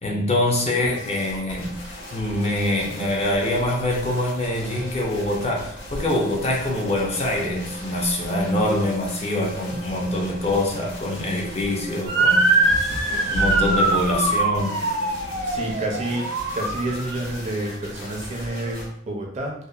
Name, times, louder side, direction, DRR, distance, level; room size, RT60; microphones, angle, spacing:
voice 1, 0.0-1.7 2.1-12.6 13.3-14.8, left 1 dB, 30° left, -1 dB, 0.4 m, -24 dB
sound 1, 0.8-18.9, equal, 55° left, 1.2 m, -38 dB
sound 2, 5.9-8.4 8.7-11.3 11.6-14.4 15.2-15.5, equal, 80° left, 0.9 m, -36 dB
Motor vehicle (road) / Siren, 12.1-17.3, right 2 dB, 90° right, 0.7 m, -22 dB
voice 2, 15.5-16.2 16.5-19.5, right 1 dB, 35° right, 0 dB, 0.4 m, -29 dB
2.7 x 2.0 x 2.3 m, 0.69 s
head